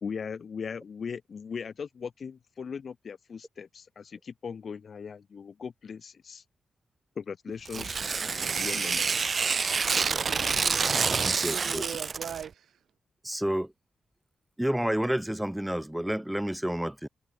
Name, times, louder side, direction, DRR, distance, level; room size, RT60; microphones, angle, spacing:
voice 1, 0.0-6.4 7.2-8.1 8.6-9.1, left 6 dB, 60° left, 3.6 m, -39 dB
Tearing, 7.7-12.5, right 5 dB, 50° right, 2.2 m, -27 dB
voice 2, 10.3-12.8, right 9 dB, 80° right, 2.4 m, -41 dB
voice 3, 11.4-11.8 13.2-13.7 14.6-17.1, right 1 dB, 5° right, 1.9 m, -29 dB
cardioid pair, 70°, 0 cm